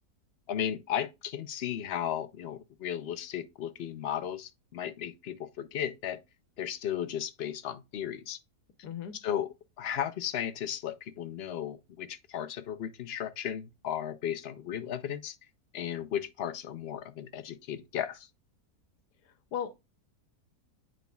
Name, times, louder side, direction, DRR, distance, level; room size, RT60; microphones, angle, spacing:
voice 1, 0.5-6.2 6.6-8.4 9.1-15.4 15.7-18.3, left 10 dB, 65° left, 0.6 m, -35 dB
voice 2, 8.8-9.1 19.5-19.8, left 8 dB, 85° left, 1.4 m, -36 dB
9.2 x 4.9 x 2.3 m
omnidirectional pair, 1.7 m